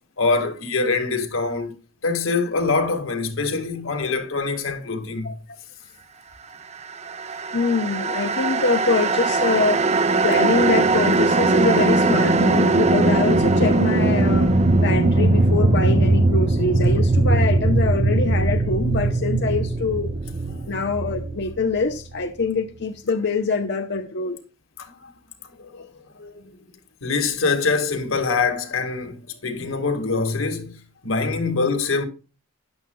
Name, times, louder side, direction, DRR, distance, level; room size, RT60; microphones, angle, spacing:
voice 1, 0.2-1.7 2.0-5.3 24.8-25.1 25.6-25.9 26.1-26.7 27.0-32.0, left 4 dB, 85° left, 1.8 m, -24 dB
sound 1, 7.0-22.2, right 2 dB, 35° right, 0.6 m, -20 dB
voice 2, 7.5-9.8 10.2-20.1 20.7-24.4, left 4 dB, 55° left, 0.7 m, -24 dB
13.5 x 10.5 x 2.3 m
head